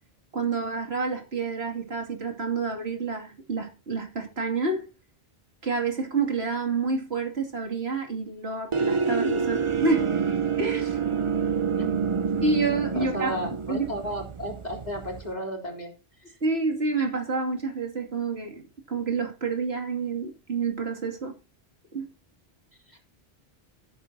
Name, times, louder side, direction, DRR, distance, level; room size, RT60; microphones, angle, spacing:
voice 1, 0.3-4.9 5.6-10.1 10.6-11.0 12.4-13.3 13.7-13.9 16.4-21.3 21.9-22.1, right 4 dB, 80° right, 2.8 m, -28 dB
sound 1, 8.7-15.3, right 6 dB, 35° right, 0.6 m, -28 dB
voice 2, 11.8-12.1 12.9-15.9 22.9-23.0, equal, 40° left, 3.8 m, -34 dB
17.0 x 8.3 x 2.8 m
omnidirectional pair, 1.1 m